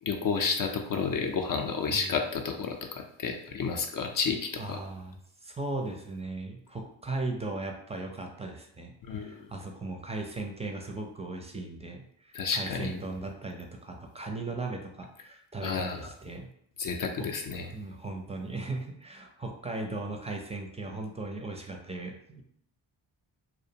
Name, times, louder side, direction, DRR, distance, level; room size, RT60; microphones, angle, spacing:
voice 1, 0.0-4.8 9.0-9.5 12.3-12.9 15.6-16.1 16.8-17.7, left 5 dB, 45° left, 3 dB, 0.5 m, -31 dB
voice 2, 4.6-5.1 5.4-16.5 17.2-17.3 17.7-22.4, right 2 dB, 15° right, 2 dB, 0.4 m, -37 dB
2.5 x 2.1 x 2.7 m, 0.70 s
supercardioid pair, 40°, 49 cm